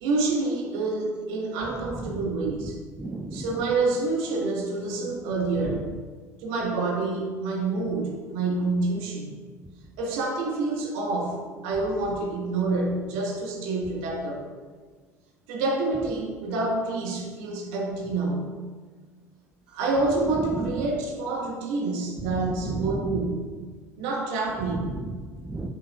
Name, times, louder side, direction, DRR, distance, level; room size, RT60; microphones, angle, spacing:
voice 1, 0.0-2.7 3.3-5.9 6.4-9.2 10.0-14.4 15.5-18.4 19.7-23.3 24.0-24.9, right 3 dB, 60° right, -1 dB, 1.5 m, -27 dB
voice 2, 3.0-3.5 20.5-20.8 22.3-23.1 24.7-25.7, right 2 dB, 10° right, 3 dB, 0.4 m, -33 dB
8.7 x 5.6 x 2.3 m, 1.5 s
figure-of-eight pair, 65°, 8 cm